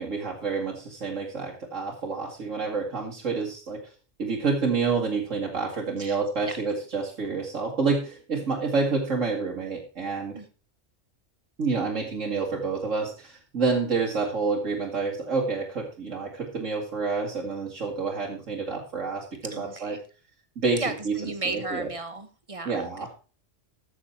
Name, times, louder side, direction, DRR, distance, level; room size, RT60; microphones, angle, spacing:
voice 1, 0.0-3.8 4.2-10.4 11.6-20.0 20.6-21.2 21.5-21.9 22.6-23.1, right 4 dB, 85° right, -2 dB, 2.4 m, -28 dB
voice 2, 19.5-20.0 20.8-22.9, right 3 dB, 30° right, 10 dB, 1.2 m, -34 dB
14.0 x 6.7 x 4.3 m, 0.35 s
omnidirectional pair, 1.3 m